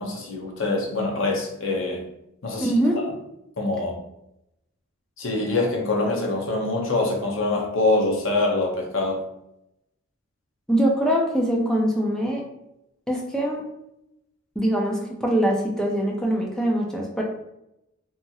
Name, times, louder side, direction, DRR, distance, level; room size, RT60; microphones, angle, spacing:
voice 1, 0.0-2.0 2.4-2.7 3.6-3.9 5.2-9.3, left 2 dB, 65° left, 0.6 m, -24 dB
voice 2, 2.6-3.0 10.7-12.4 13.1-13.6 14.6-17.2, right 1 dB, 5° left, 0.4 m, -23 dB
2.8 x 2.6 x 2.3 m
head